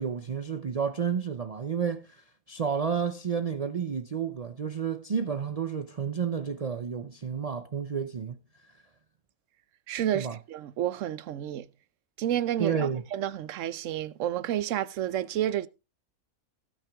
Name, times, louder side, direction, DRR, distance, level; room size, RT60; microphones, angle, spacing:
voice 1, 0.0-2.2 2.5-8.4 10.1-10.4 12.6-13.0, right 7 dB, 85° right, 0.3 m, -31 dB
voice 2, 9.9-11.7 12.2-15.7, right 11 dB, 65° right, 0.9 m, -30 dB
16.5 x 5.9 x 3.5 m
omnidirectional pair, 1.6 m